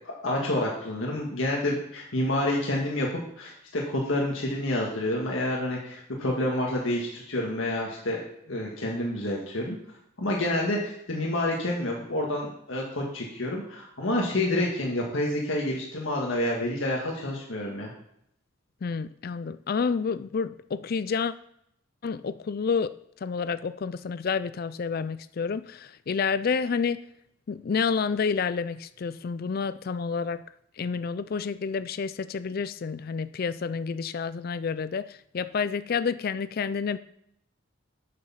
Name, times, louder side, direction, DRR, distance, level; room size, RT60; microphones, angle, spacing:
voice 1, 0.0-3.1 3.4-8.2 8.5-9.8 10.2-17.9, left 1 dB, 80° left, -2 dB, 1.7 m, -28 dB
voice 2, 18.8-21.3 22.0-23.0 23.2-27.0 27.5-30.4 30.8-37.0, left 5 dB, 50° left, 15 dB, 0.4 m, -29 dB
7.9 x 6.7 x 5.6 m, 0.74 s
head